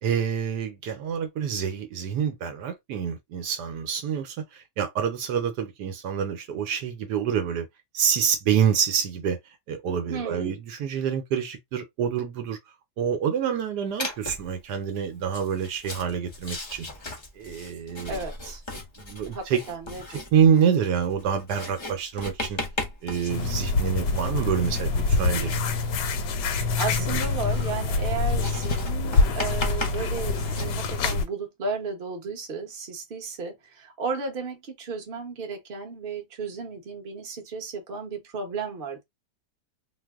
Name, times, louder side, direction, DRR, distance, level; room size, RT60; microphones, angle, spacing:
voice 1, 0.0-7.7 7.9-9.4 9.7-12.6 13.0-16.9 17.4-18.2 19.0-19.6 20.1-22.6 23.0-25.6 27.1-27.2, right 8 dB, 75° right, 1.2 m, -27 dB
voice 2, 10.1-10.6 18.1-18.6 19.3-20.0 26.5-39.0, right 4 dB, 40° right, 0.9 m, -34 dB
Writing, 14.0-14.5 15.2-30.7, left 2 dB, 40° left, 0.4 m, -38 dB
sound 1, 23.3-31.2, left 4 dB, 80° left, 1.2 m, -25 dB
2.9 x 2.0 x 3.4 m
omnidirectional pair, 1.8 m